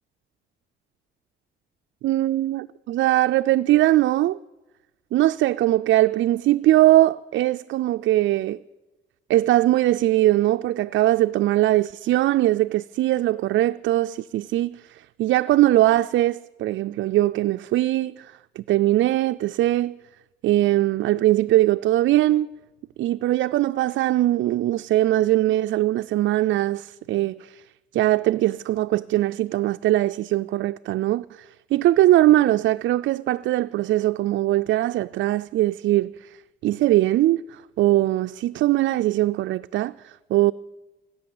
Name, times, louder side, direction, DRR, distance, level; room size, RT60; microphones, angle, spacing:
voice 1, 2.0-4.4 5.1-8.6 9.3-20.0 20.4-22.5 23.0-27.6 27.9-36.4 36.6-40.5, right 15 dB, 70° right, 0.4 m, -21 dB
16.0 x 10.0 x 7.8 m
cardioid pair, 90°, 20 cm